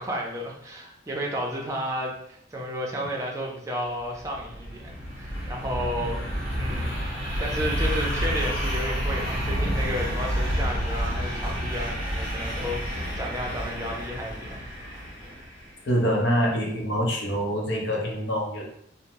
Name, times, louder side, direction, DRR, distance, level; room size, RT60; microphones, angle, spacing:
voice 1, 0.0-6.9 7.4-14.6, equal, 15° right, -1 dB, 0.5 m, -32 dB
sound 1, 4.0-15.7, equal, 10° left, 1.2 m, -29 dB
voice 2, 15.9-18.6, equal, 75° left, -2 dB, 0.7 m, -25 dB
2.6 x 2.0 x 2.9 m, 0.70 s
head